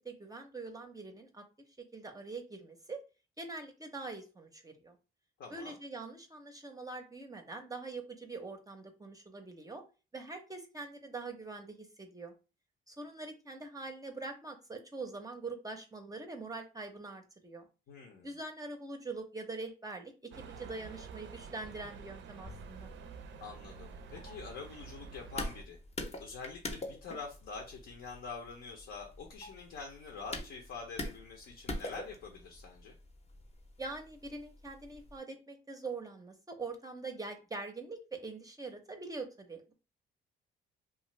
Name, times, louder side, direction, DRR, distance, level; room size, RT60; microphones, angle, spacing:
voice 1, 0.0-1.4 1.8-3.0 3.4-5.0 5.5-9.8 10.1-12.3 12.9-17.6 18.2-22.9 33.8-39.7, right 3 dB, 20° right, 5 dB, 0.5 m, -43 dB
voice 2, 5.4-5.8 17.9-18.3 23.4-25.8 26.2-32.9, left 4 dB, 70° left, 1 dB, 0.7 m, -46 dB
sound 1, 20.3-25.6, right 6 dB, 70° right, 0.4 m, -49 dB
sound 2, 22.4-35.2, left 2 dB, 30° left, 0.6 m, -45 dB
2.4 x 2.4 x 3.0 m, 0.32 s
cardioid pair, 90°, 20 cm